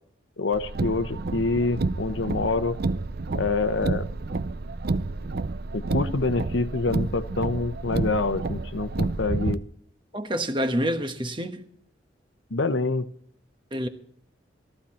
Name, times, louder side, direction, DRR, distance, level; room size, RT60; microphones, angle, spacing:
voice 1, 0.4-2.8 3.3-4.1 5.7-9.6 12.5-13.1, left 3 dB, 85° left, 0.9 m, -26 dB
Car, 0.5-9.5, right 3 dB, 55° right, 0.6 m, -30 dB
voice 2, 10.1-11.6 13.7-13.9, equal, 25° right, 1.2 m, -27 dB
14.5 x 14.0 x 4.3 m
head